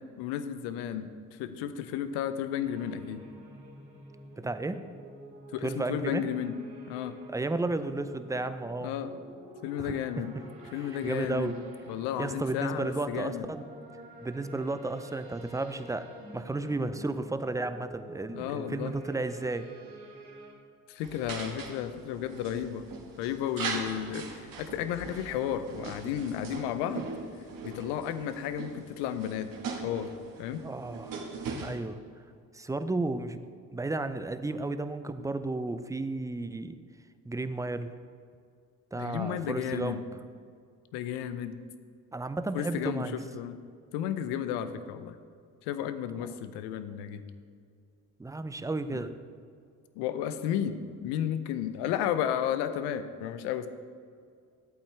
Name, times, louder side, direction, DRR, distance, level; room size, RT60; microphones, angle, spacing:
voice 1, 0.2-3.2 5.5-6.5 6.9-7.2 8.8-9.1 9.6-10.3 10.7-11.6 11.9-13.5 18.3-18.9 20.9-22.8 23.2-27.1 27.6-29.5 29.8-30.1 30.4-30.6 38.9-40.0 40.9-41.6 42.5-43.6 43.9-45.1 45.6-47.2 48.9-49.0 50.0-53.7, left 9 dB, 75° left, 11 dB, 0.7 m, -33 dB
sound 1, 2.6-20.5, right 1 dB, 70° right, 2.4 m, -49 dB
voice 2, 4.4-4.8 5.6-6.2 7.3-8.9 9.8-10.0 10.7-11.6 12.2-13.6 14.2-16.1 16.3-19.7 30.6-31.2 31.6-32.0 32.5-33.4 33.7-36.8 37.3-37.9 38.9-40.0 42.1-43.1 48.2-49.2, right 2 dB, 10° right, 10 dB, 0.5 m, -33 dB
sound 2, 21.0-31.8, right 4 dB, 55° right, 1.7 m, -40 dB
11.5 x 8.4 x 3.4 m, 2.2 s
hypercardioid pair, 55°, 41 cm